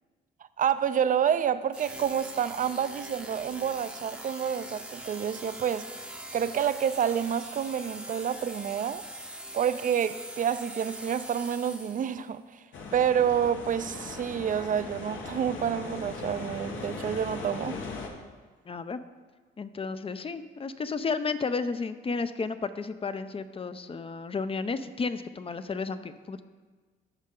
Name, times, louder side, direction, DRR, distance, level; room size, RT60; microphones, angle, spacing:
voice 1, 0.6-5.9 6.3-9.0 9.5-12.4 12.9-17.8, right 8 dB, 40° right, 0.5 m, -28 dB
sound 1, 1.7-12.3, right 1 dB, 5° right, 0.7 m, -42 dB
sound 2, 12.7-18.1, left 3 dB, 75° left, 1.4 m, -39 dB
voice 2, 18.7-19.0 19.6-26.4, left 4 dB, 30° left, 0.5 m, -32 dB
14.0 x 5.5 x 3.8 m
cardioid pair, 90°, 20 cm